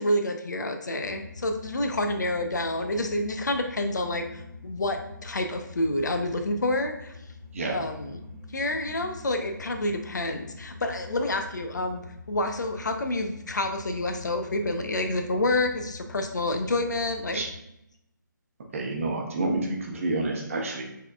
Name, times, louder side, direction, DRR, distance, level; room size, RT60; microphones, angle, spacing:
voice 1, 0.0-7.2 7.7-8.1 8.5-12.0 12.3-17.4, left 1 dB, 60° left, 5 dB, 0.6 m, -28 dB
sound 1, 1.0-17.6, left 2 dB, 10° left, 0.9 m, -44 dB
voice 2, 18.7-20.8, right 2 dB, 40° right, 0 dB, 0.9 m, -29 dB
4.3 x 3.6 x 2.4 m, 0.84 s
figure-of-eight pair, 145°, 11 cm